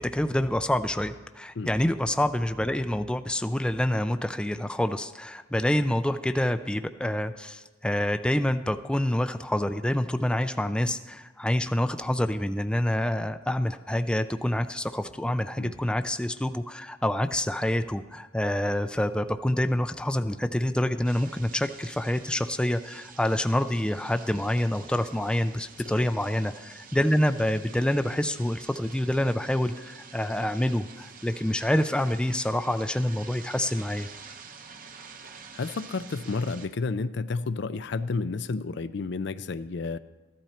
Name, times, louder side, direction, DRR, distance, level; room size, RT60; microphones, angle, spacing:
voice 1, 0.0-34.1, left 1 dB, 5° left, 9 dB, 0.4 m, -27 dB
sound 1, 21.0-36.7, right 5 dB, 45° right, 0.9 m, -48 dB
voice 2, 35.5-40.0, left 4 dB, 60° left, 13 dB, 0.5 m, -31 dB
14.5 x 12.0 x 4.3 m, 1.2 s
head